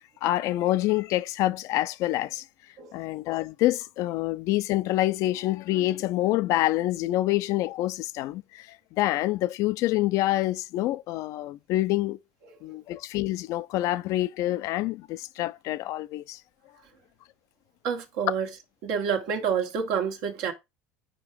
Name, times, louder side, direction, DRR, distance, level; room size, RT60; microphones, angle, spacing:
voice 1, 0.0-2.4 2.9-12.2 12.6-16.4, left 16 dB, 60° left, 0.5 m, -27 dB
voice 2, 17.8-18.5 18.8-20.5, right 7 dB, 65° right, 1.4 m, -28 dB
5.0 x 4.7 x 4.7 m
hypercardioid pair, 80°, 6 cm